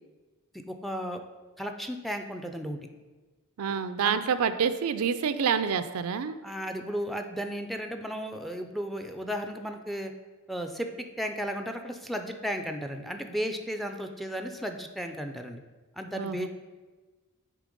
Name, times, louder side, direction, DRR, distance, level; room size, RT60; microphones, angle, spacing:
voice 1, 0.5-1.2 1.6-2.8 3.6-4.2 6.4-10.1 10.5-15.6 16.0-16.5, equal, ahead, 5 dB, 0.4 m, -34 dB
voice 2, 3.6-6.4 16.2-16.5, right 6 dB, 75° right, 11 dB, 0.4 m, -27 dB
8.4 x 3.3 x 5.2 m, 1.3 s
head